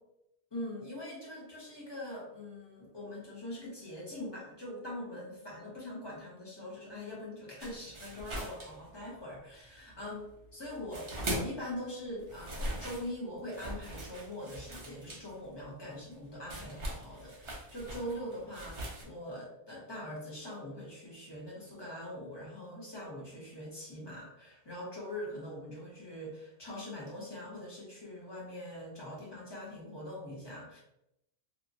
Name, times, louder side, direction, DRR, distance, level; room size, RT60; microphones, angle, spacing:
voice 1, 0.5-10.3 10.5-30.8, left 1 dB, 25° left, -5 dB, 0.9 m, -43 dB
sound 1, 7.6-9.4 9.7-11.7 12.0-19.0, right 1 dB, 35° right, 0.5 m, -41 dB
2.8 x 2.4 x 2.6 m, 0.83 s
omnidirectional pair, 1.1 m